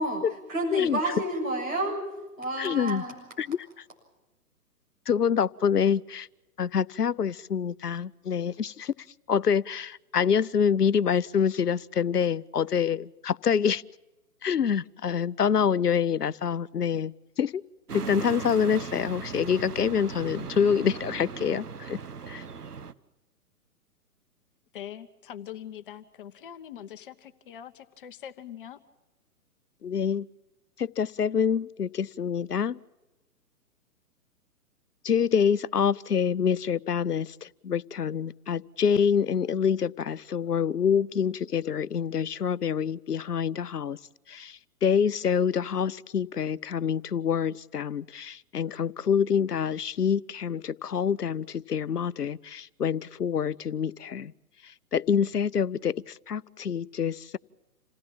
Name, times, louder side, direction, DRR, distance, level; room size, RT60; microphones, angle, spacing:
voice 1, 0.0-2.0 2.4-3.1, right 1 dB, 55° right, 7.2 m, -30 dB
voice 2, 2.6-3.0 3.4-3.6 5.1-6.3 6.6-8.9 9.3-13.8 14.4-17.6 17.9-22.0 22.3-22.4 29.8-30.3 30.8-32.8 35.0-44.0 44.3-54.3 54.6-57.4, left 7 dB, 80° left, 0.7 m, -26 dB
sound 1, 17.9-22.9, right 5 dB, 75° right, 1.1 m, -38 dB
voice 3, 24.7-28.8, left 10 dB, 35° left, 1.1 m, -43 dB
27.5 x 17.0 x 7.5 m
figure-of-eight pair, 125°, 46 cm